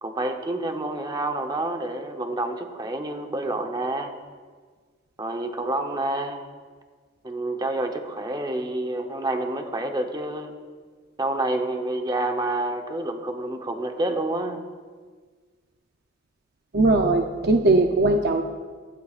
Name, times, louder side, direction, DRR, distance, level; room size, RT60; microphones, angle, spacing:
voice 1, 0.0-4.1 5.2-6.4 7.2-10.5 11.2-14.6, right 2 dB, 20° right, 4 dB, 0.9 m, -28 dB
voice 2, 16.7-18.4, right 2 dB, 50° right, 4 dB, 0.6 m, -19 dB
16.5 x 13.0 x 2.5 m, 1.5 s
head